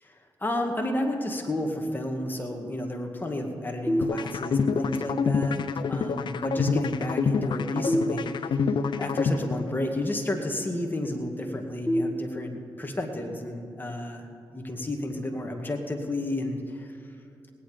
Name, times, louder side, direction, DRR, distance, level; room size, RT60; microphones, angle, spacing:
voice 1, 0.0-8.6 9.0-14.3 14.5-16.9, left 1 dB, 20° left, 3 dB, 2.0 m, -31 dB
sound 1, 3.9-4.8 7.8-8.9 11.9-12.9, equal, 5° right, 1.6 m, -29 dB
sound 2, 4.0-10.0, left 5 dB, 65° left, 0.6 m, -27 dB
19.5 x 9.2 x 5.1 m, 2.6 s
supercardioid pair, 45°, 9 cm